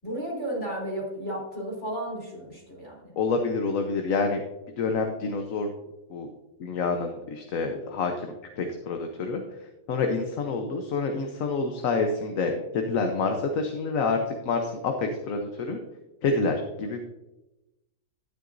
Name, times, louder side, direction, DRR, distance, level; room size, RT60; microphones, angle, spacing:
voice 1, 0.0-3.1, right 1 dB, 55° left, -3 dB, 3.8 m, -33 dB
voice 2, 3.2-4.4 4.8-5.7 6.1-6.3 6.6-9.6 9.9-15.8 16.2-17.0, left 4 dB, 70° left, 4 dB, 1.2 m, -28 dB
12.0 x 9.6 x 2.6 m, 1.0 s
omnidirectional pair, 1.5 m